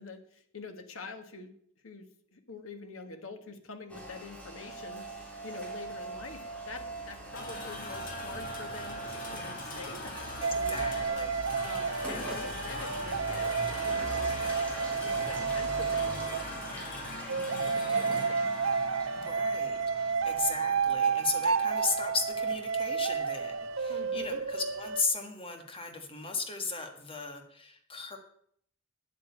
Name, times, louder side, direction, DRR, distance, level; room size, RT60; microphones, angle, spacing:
voice 1, 0.0-1.5 1.8-2.1 2.3-5.0 5.4-11.2 11.6-13.5 13.8-14.3 15.0-16.4 16.7-18.9 23.9-24.4, left 3 dB, 85° left, 6 dB, 1.6 m, -46 dB
Rain, 3.9-19.3, right 1 dB, 5° left, 3.4 m, -42 dB
sound 1, 7.3-24.9, left 1 dB, 45° left, 2.9 m, -43 dB
voice 2, 10.4-11.4 19.1-28.2, left 4 dB, 25° left, 5 dB, 1.7 m, -36 dB
sound 2, 10.4-16.7 17.3-25.0, right 5 dB, 70° right, 0.7 m, -31 dB
9.4 x 8.5 x 8.5 m, 0.65 s
head